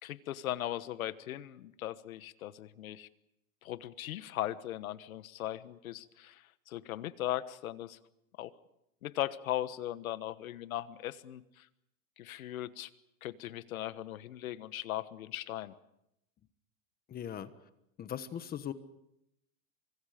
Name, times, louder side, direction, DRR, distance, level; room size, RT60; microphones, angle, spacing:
voice 1, 0.0-3.1 3.6-8.0 8.4-8.5 9.0-11.7 12.2-12.9 13.2-15.7, left 13 dB, 90° left, 14 dB, 1.4 m, -38 dB
voice 2, 17.1-17.5 18.0-18.7, left 9 dB, 20° left, 12 dB, 1.3 m, -39 dB
30.0 x 24.5 x 5.2 m, 0.81 s
supercardioid pair, 145°, 41 cm